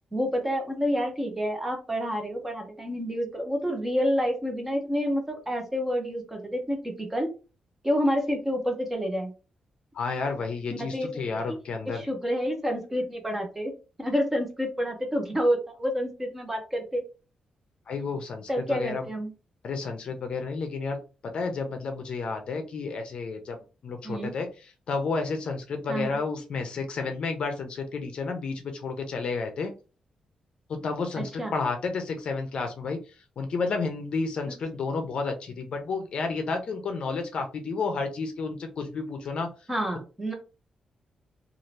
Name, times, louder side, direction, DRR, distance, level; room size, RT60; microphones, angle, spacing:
voice 1, 0.1-7.3 7.8-9.3 10.8-11.6 11.9-13.7 14.0-17.0 18.5-19.3 24.0-24.3 25.9-26.2 31.2-31.5 39.7-40.3, equal, 10° right, 3 dB, 0.7 m, -28 dB
voice 2, 9.9-12.0 17.9-19.1 19.6-21.0 21.2-23.6 23.8-24.5 24.9-29.7 30.7-33.0 33.4-39.5, left 4 dB, 50° left, 5 dB, 0.6 m, -31 dB
2.7 x 2.5 x 3.2 m, 0.33 s
wide cardioid pair, 180°, 2 cm